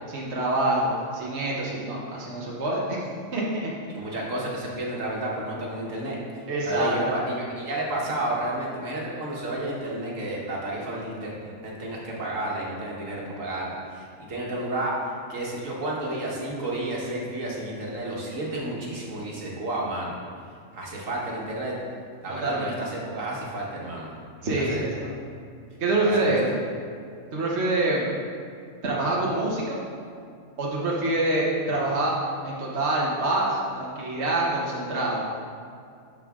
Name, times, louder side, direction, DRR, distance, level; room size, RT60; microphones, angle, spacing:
voice 1, 0.1-3.0 3.3-3.7 6.5-7.0 22.4-22.7 24.4-25.1 25.8-26.6 27.3-28.1 28.8-29.8 30.6-32.2 32.4-35.2, right 2 dB, 55° right, -5 dB, 1.4 m, -26 dB
voice 2, 3.9-15.0 15.3-20.1 20.7-21.8 22.2-24.1 24.4-24.8 26.0-26.3, right 1 dB, 75° right, -4 dB, 1.9 m, -31 dB
12.5 x 5.0 x 3.7 m, 2.3 s
omnidirectional pair, 1.4 m